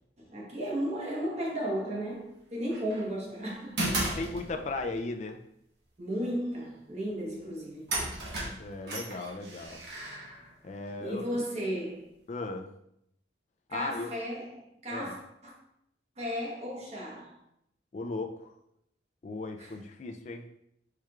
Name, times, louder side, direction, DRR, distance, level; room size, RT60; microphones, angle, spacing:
voice 1, 0.2-3.8 6.0-8.0 11.0-12.1 13.7-15.5 16.2-17.4 19.6-19.7, equal, 35° right, 1.1 m, -34 dB
sound 1, 2.7-3.1 3.8-4.9 7.3-7.4 7.9-10.9, right 1 dB, 65° right, 1.2 m, -35 dB
voice 2, 4.2-5.4 8.6-9.8 10.6-11.4 12.3-12.7 13.7-14.1 14.9-15.2 17.9-18.5 19.2-20.5, left 3 dB, 40° left, 0.4 m, -36 dB
4.7 x 4.4 x 2.4 m
head